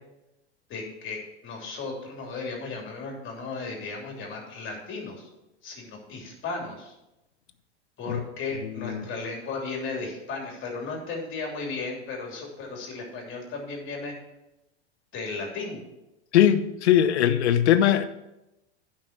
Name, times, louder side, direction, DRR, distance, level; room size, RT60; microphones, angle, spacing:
voice 1, 0.7-5.3 5.6-6.9 8.0-14.1 15.1-15.8, left 3 dB, 35° left, 3.2 m, -35 dB
voice 2, 8.6-9.0 16.3-18.0, left 10 dB, 80° left, 1.0 m, -21 dB
10.5 x 5.8 x 6.1 m
hypercardioid pair, 115°, 33 cm